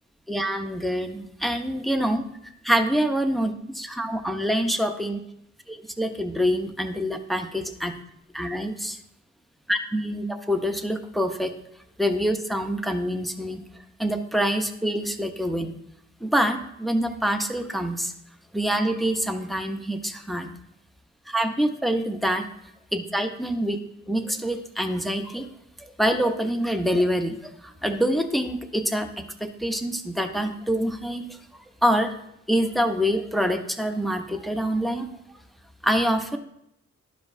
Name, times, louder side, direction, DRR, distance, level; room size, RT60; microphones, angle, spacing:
voice 1, 0.3-2.2 2.6-5.2 5.7-7.9 8.3-9.0 9.7-11.5 12.0-13.6 14.0-15.7 16.2-18.1 18.5-20.5 21.3-22.4 22.9-23.8 24.1-25.5 26.0-29.1 29.4-31.4 31.8-32.1 32.5-35.1 35.8-36.4, equal, ahead, 6 dB, 0.8 m, -25 dB
12.0 x 5.1 x 2.6 m, 0.78 s
cardioid pair, 65°, 29 cm